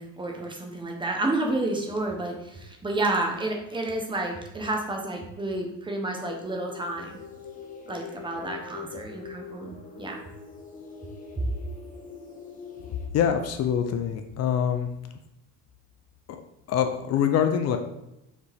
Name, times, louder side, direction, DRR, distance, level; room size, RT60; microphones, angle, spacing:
voice 1, 0.0-7.2 7.9-10.2 11.4-11.5, right 2 dB, 15° right, 1 dB, 1.0 m, -30 dB
sound 1, 6.2-13.1, left 6 dB, 25° left, 1.0 m, -43 dB
voice 2, 13.1-14.9 16.7-17.8, left 8 dB, 50° left, 6 dB, 0.6 m, -24 dB
6.5 x 5.0 x 3.5 m, 0.88 s
cardioid pair, 155°, 32 cm